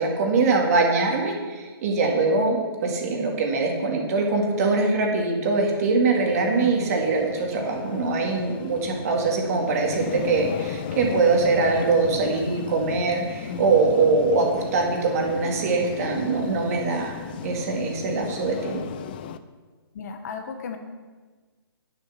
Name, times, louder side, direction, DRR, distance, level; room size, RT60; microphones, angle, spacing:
voice 1, 0.0-18.8, right 3 dB, 40° right, 1 dB, 2.0 m, -23 dB
sound 1, 6.1-19.4, left 9 dB, 25° left, 0.3 m, -36 dB
voice 2, 6.6-7.0 9.5-10.0 13.5-13.7 19.9-20.8, left 5 dB, 40° left, 5 dB, 1.3 m, -36 dB
9.6 x 7.1 x 5.9 m, 1.4 s
hypercardioid pair, 155°, 13 cm